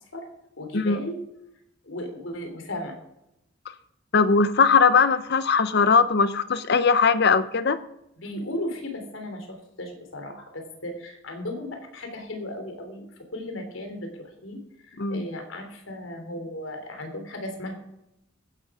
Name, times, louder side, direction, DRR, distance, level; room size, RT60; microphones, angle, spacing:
voice 1, 0.6-1.2 1.8-3.0 8.2-13.0 13.3-14.6 14.8-17.7, left 1 dB, 85° left, 5 dB, 3.4 m, -35 dB
voice 2, 4.1-7.8 15.0-15.2, left 5 dB, 55° left, 13 dB, 0.8 m, -20 dB
15.0 x 11.0 x 5.0 m, 0.82 s
head